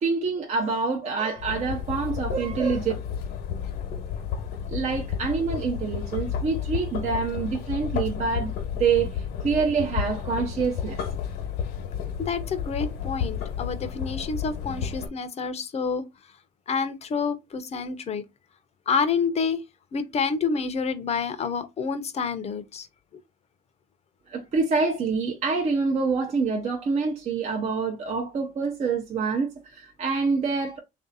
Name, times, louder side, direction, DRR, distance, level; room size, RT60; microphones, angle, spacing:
voice 1, 0.0-2.9 4.7-11.0 24.3-30.8, right 4 dB, 45° right, 0.7 m, -26 dB
sound 1, 1.4-15.1, left 8 dB, 80° left, 1.1 m, -32 dB
voice 2, 12.2-16.0 16.7-18.2 18.9-19.6 19.9-22.9, left 5 dB, 40° left, 0.7 m, -28 dB
3.2 x 2.6 x 4.0 m
cardioid pair, 110°, 17 cm